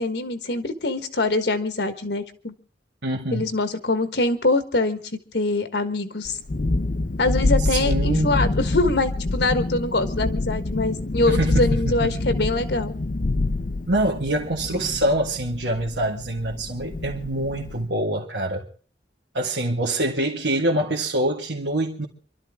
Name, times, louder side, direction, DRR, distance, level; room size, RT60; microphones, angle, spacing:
voice 1, 0.0-2.5 3.3-5.0 5.3-6.4 7.2-12.9, left 2 dB, 70° left, 1.5 m, -24 dB
voice 2, 3.0-3.5 7.7-8.4 11.3-12.2 13.8-18.7 19.3-22.1, right 1 dB, 80° right, 1.9 m, -25 dB
Thunderstorm, 6.2-17.8, left 2 dB, 50° left, 0.7 m, -26 dB
27.5 x 12.5 x 3.7 m
head